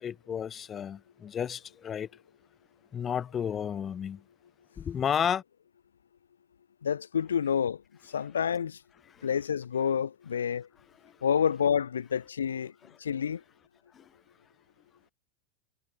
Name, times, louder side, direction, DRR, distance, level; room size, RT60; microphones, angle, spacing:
voice 1, 0.0-2.1 2.9-4.2 4.8-5.4 9.1-9.3 11.0-11.1 13.9-14.0, left 8 dB, 25° left, 0.6 m, -32 dB
voice 2, 6.8-7.8 8.1-8.8 9.2-10.7 11.2-12.7 13.0-13.4, left 7 dB, 70° left, 0.6 m, -28 dB
figure-of-eight pair, 90°, 0 cm